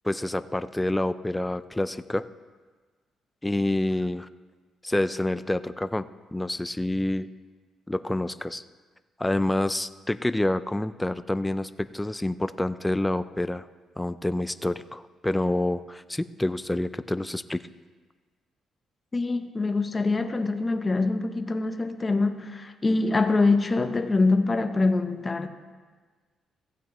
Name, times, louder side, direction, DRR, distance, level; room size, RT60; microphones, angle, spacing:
voice 1, 0.0-2.3 3.4-4.3 4.8-7.3 7.9-8.6 9.2-13.7 14.0-17.6, left 1 dB, 10° left, 0.4 m, -28 dB
voice 2, 19.1-25.5, left 3 dB, 25° left, 0.8 m, -24 dB
15.5 x 9.2 x 3.0 m
cardioid pair, 90°, 0 cm